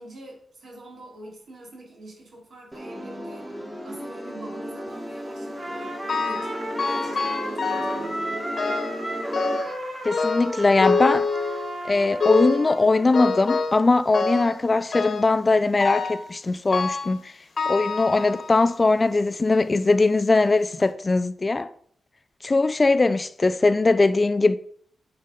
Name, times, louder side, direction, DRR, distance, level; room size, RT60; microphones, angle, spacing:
voice 1, 0.0-8.4, right 1 dB, 65° right, 3.3 m, -44 dB
sound 1, 2.7-9.6, equal, 10° right, 1.7 m, -35 dB
Trumpet, 5.5-13.1, right 1 dB, 25° right, 1.9 m, -34 dB
sound 2, 6.1-6.5 6.8-8.1 8.6-9.0 9.3-9.8 10.1-11.8 12.2-12.7 13.1-13.8 14.1-14.6 14.9-15.3 15.8-16.2 16.7-17.2 17.6-18.6 19.3-19.4 20.2-20.3 20.7-20.8, left 4 dB, 50° left, 1.3 m, -26 dB
voice 2, 10.0-11.3 11.8-17.3 17.7-21.7 22.4-24.6, left 3 dB, 30° left, 0.3 m, -20 dB
8.1 x 5.1 x 5.2 m
wide cardioid pair, 105°, 0 cm